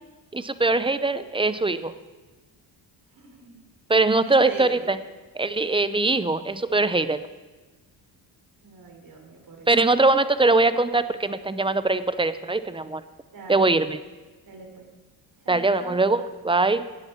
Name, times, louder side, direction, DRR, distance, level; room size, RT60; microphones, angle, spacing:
voice 1, 0.3-1.9 3.9-5.0 5.3-7.2 9.7-13.0 13.5-14.0 15.5-16.9, right 3 dB, 10° right, 13 dB, 0.6 m, -22 dB
voice 2, 3.1-3.5 4.2-4.9 8.6-9.7 13.3-13.7 14.4-14.9 15.4-16.0, right 4 dB, 45° right, 2 dB, 3.7 m, -41 dB
15.0 x 10.0 x 4.5 m, 1.3 s
cardioid pair, 80°, 47 cm